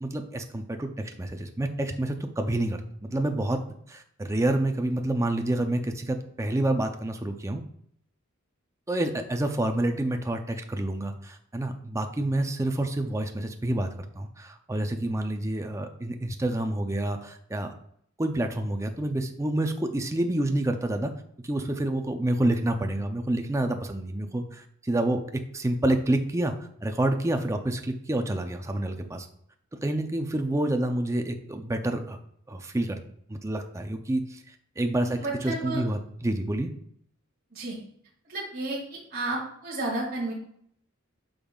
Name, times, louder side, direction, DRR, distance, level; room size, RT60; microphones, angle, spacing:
voice 1, 0.0-3.6 3.9-7.6 8.9-17.7 18.2-21.1 21.4-29.3 29.8-32.2 32.5-33.0 33.3-36.7, right 1 dB, 15° right, 5 dB, 0.5 m, -28 dB
voice 2, 35.0-35.8 37.5-37.8 38.3-40.3, right 2 dB, 45° right, -5 dB, 2.2 m, -32 dB
8.7 x 5.4 x 2.4 m, 0.68 s
head